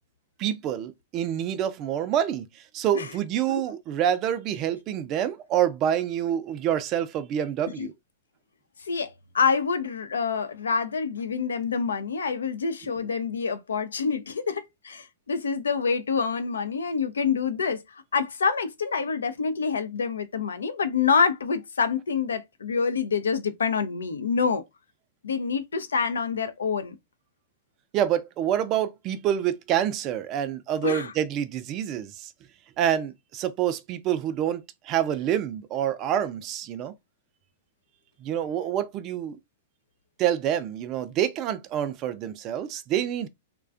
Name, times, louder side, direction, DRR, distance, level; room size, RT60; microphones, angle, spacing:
voice 1, 0.4-2.5 2.7-7.9 27.9-32.3 32.8-36.9 38.2-39.4 40.2-43.3, right 10 dB, 35° right, 0.3 m, -27 dB
voice 2, 8.8-24.6 25.2-27.0 30.8-31.1, left 5 dB, 75° left, 0.4 m, -27 dB
2.3 x 2.2 x 2.4 m
figure-of-eight pair, 105°, 0 cm